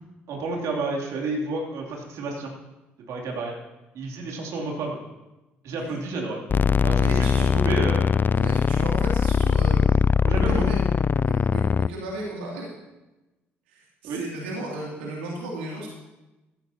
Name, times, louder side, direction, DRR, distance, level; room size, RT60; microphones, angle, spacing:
voice 1, 0.3-2.5 3.1-3.5 3.9-5.0 5.6-6.4 6.8-8.1 8.8-8.9 10.2-10.8 14.0-14.2, right 2 dB, 65° right, -1 dB, 2.9 m, -30 dB
sound 1, 6.5-11.9, left 6 dB, 35° left, 0.3 m, -21 dB
voice 2, 7.0-7.5 8.3-10.0 10.5-10.8 11.1-12.7 13.7-15.9, right 1 dB, 85° right, -3 dB, 2.7 m, -35 dB
15.5 x 14.0 x 2.9 m, 1.0 s
hypercardioid pair, 55°, 6 cm